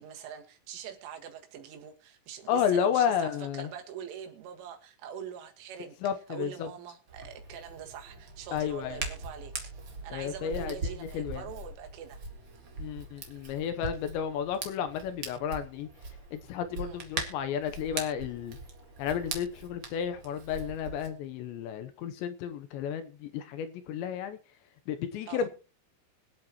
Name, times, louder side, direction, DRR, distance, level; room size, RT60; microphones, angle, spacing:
voice 1, 0.0-6.0 6.3-9.5 10.0-12.2 16.8-17.0 25.3-25.5, right 8 dB, 85° right, 4.3 m, -43 dB
voice 2, 2.5-3.7 6.0-6.7 8.5-9.1 10.1-11.4 12.8-15.9 16.3-18.6 19.0-24.4 24.9-25.5, left 8 dB, 80° left, 3.0 m, -32 dB
Hands, 7.1-21.1, right 3 dB, 55° right, 1.4 m, -41 dB
24.5 x 8.5 x 3.0 m
omnidirectional pair, 5.5 m